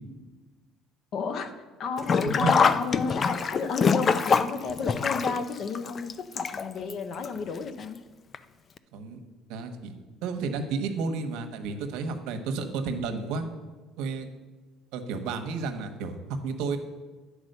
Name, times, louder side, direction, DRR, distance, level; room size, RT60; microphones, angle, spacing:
voice 1, 1.1-1.5 1.8-8.0, left 5 dB, 55° left, 9 dB, 0.8 m, -32 dB
Sink (filling or washing), 2.0-6.9 7.2-7.3 8.3-8.4 8.8-8.9, left 5 dB, 35° left, 0.4 m, -24 dB
voice 2, 8.9-9.2 9.5-9.9 10.2-13.5 14.0-14.3 14.9-16.2 16.4-16.8, right 4 dB, 80° right, 6 dB, 0.9 m, -31 dB
9.1 x 4.8 x 6.5 m, 1.3 s
cardioid pair, 115°, 0 cm